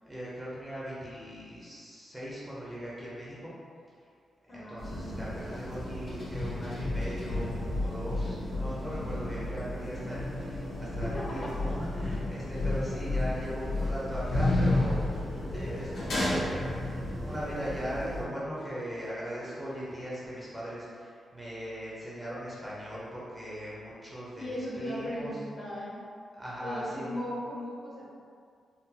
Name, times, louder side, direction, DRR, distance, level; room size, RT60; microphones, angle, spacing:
voice 1, 0.0-3.5 4.5-15.2 15.5-16.6 17.2-25.3 26.4-27.2, equal, 5° right, -8 dB, 0.6 m, -39 dB
voice 2, 4.5-5.5 11.0-11.6 12.9-13.0 24.4-26.0 26.6-28.0, left 1 dB, 40° left, -7 dB, 0.9 m, -38 dB
sound 1, 4.8-18.2, left 1 dB, 90° left, 1.1 m, -32 dB
Musical instrument, 6.5-20.3, equal, 60° right, 0.5 m, -48 dB
3.7 x 2.0 x 2.8 m, 2.2 s
wide cardioid pair, 125°, 0 cm